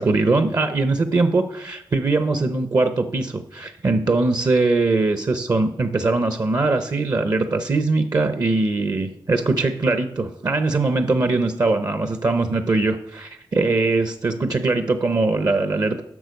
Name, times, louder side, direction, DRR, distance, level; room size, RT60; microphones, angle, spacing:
voice 1, 0.0-16.0, right 3 dB, 50° right, 9 dB, 0.8 m, -21 dB
11.0 x 6.5 x 5.3 m, 0.74 s
wide cardioid pair, 100°, 9 cm